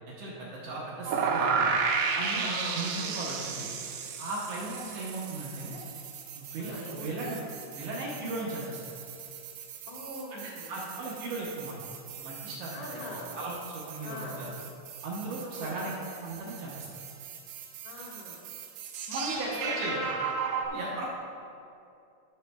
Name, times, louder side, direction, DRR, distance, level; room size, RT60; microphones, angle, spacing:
voice 1, 0.1-1.7 2.2-3.7 4.2-5.8 6.3-7.4 7.8-8.9 10.3-11.8 12.2-13.0 13.3-14.5 15.0-15.9 16.2-16.9 19.1-20.0 20.7-21.2, right 2 dB, 75° right, -6 dB, 2.7 m, -37 dB
sound 1, 1.1-20.7, right 5 dB, 90° right, 3.4 m, -35 dB
voice 2, 2.3-3.2 4.6-5.0 6.6-7.5 9.9-10.8 12.7-13.3 14.0-14.5 15.4-15.9 17.9-18.4 19.3-20.1, left 2 dB, 90° left, -4 dB, 4.2 m, -42 dB
16.5 x 6.5 x 2.3 m, 2.6 s
omnidirectional pair, 5.9 m